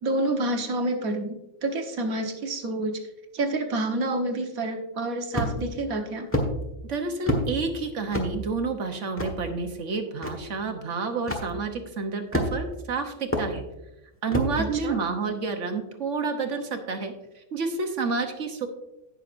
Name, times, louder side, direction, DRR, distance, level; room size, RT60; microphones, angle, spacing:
voice 1, 0.0-3.0 3.3-6.3 14.6-15.0, right 2 dB, 90° right, 4 dB, 1.6 m, -28 dB
sound 1, 5.3-5.7 6.3-6.5 7.3-7.5 8.1-8.3 9.2-9.3 10.2-10.3 11.3-11.5 12.3-12.7 13.3-13.5 14.3-14.5, equal, 10° left, 1.3 m, -26 dB
voice 2, 6.9-13.6 14.2-17.1 17.5-18.7, right 4 dB, 65° right, 5 dB, 1.3 m, -29 dB
17.5 x 6.4 x 2.5 m, 0.93 s
omnidirectional pair, 1.4 m